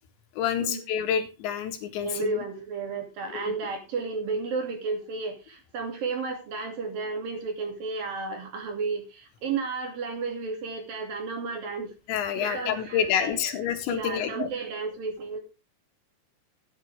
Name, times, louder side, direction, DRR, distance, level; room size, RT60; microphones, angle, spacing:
voice 1, 0.4-2.3 3.3-3.5 12.1-14.5, left 8 dB, 80° left, 7 dB, 4.0 m, -28 dB
voice 2, 2.0-11.9 12.4-13.4 13.9-15.4, right 4 dB, 55° right, 3 dB, 4.2 m, -32 dB
15.0 x 10.0 x 3.5 m, 0.28 s
omnidirectional pair, 5.1 m